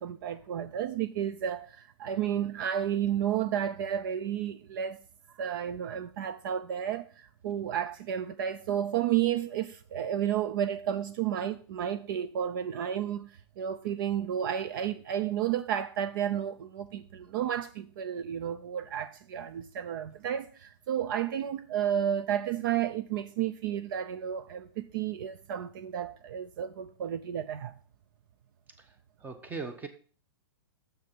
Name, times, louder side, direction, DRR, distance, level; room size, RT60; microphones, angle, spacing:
voice 1, 0.0-5.0 5.4-27.7, right 10 dB, 55° right, 0.6 m, -32 dB
voice 2, 29.2-29.9, right 4 dB, 15° right, 1.1 m, -39 dB
7.3 x 6.4 x 6.1 m
hypercardioid pair, 145°, 13 cm